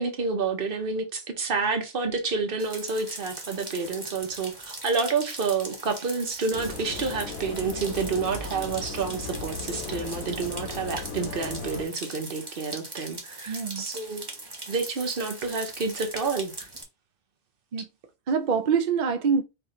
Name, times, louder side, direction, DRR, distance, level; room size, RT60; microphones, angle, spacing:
voice 1, 0.0-14.3 14.7-16.7, right 4 dB, 45° right, 1.1 m, -29 dB
sound 1, 2.6-16.8, right 2 dB, 20° right, 1.2 m, -40 dB
sound 2, 6.5-11.9, left 3 dB, 85° left, 1.5 m, -37 dB
voice 2, 13.5-13.9 17.7-17.9 18.3-19.4, right 6 dB, 65° right, 0.4 m, -25 dB
4.6 x 2.7 x 3.7 m
omnidirectional pair, 1.4 m